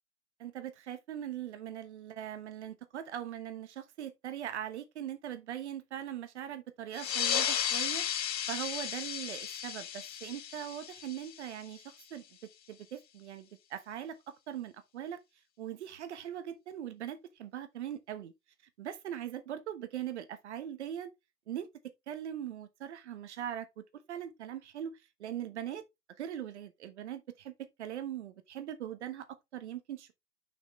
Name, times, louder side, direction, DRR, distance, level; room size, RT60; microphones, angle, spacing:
voice 1, 0.4-8.0 8.5-11.8 12.1-12.2 12.7-14.2 14.5-15.2 15.6-18.3 18.8-21.1 21.5-21.7 22.1-23.8 24.1-25.8 26.2-27.5 27.8-29.3 29.5-30.1, right 10 dB, 45° right, 1.1 m, -40 dB
sound 1, 6.9-12.0, left 9 dB, 85° left, 0.9 m, -34 dB
6.3 x 6.0 x 3.1 m
hypercardioid pair, 150°, 49 cm